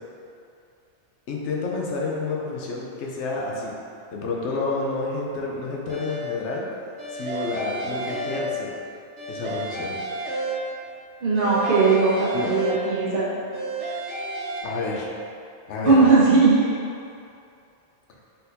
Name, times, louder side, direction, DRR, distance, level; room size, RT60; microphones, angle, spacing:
voice 1, 1.3-3.7 4.1-6.7 7.1-8.7 9.3-9.9 12.3-12.6 14.6-15.1 15.7-16.2, left 3 dB, 85° left, -2 dB, 1.0 m, -29 dB
sound 1, 5.9-6.5 7.0-8.8 9.2-11.0 11.3-13.1 13.5-14.6, right 1 dB, 90° right, 1.2 m, -31 dB
voice 2, 11.2-13.3 15.8-16.7, right 4 dB, 55° right, -7 dB, 1.0 m, -18 dB
4.2 x 4.1 x 2.6 m, 2.5 s
omnidirectional pair, 1.2 m